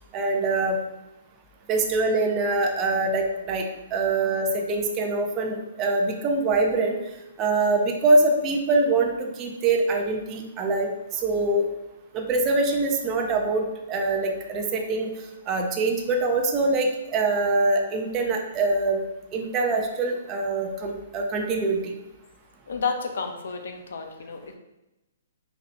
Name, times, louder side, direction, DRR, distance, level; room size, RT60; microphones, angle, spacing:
voice 1, 0.1-0.8 1.7-7.0 7.4-11.7 12.1-15.1 15.5-19.0 19.3-21.9, right 2 dB, 15° right, 2 dB, 0.4 m, -24 dB
voice 2, 22.7-24.6, left 5 dB, 65° left, 5 dB, 0.6 m, -31 dB
4.0 x 3.1 x 2.8 m, 0.96 s
hypercardioid pair, 175°, 0 cm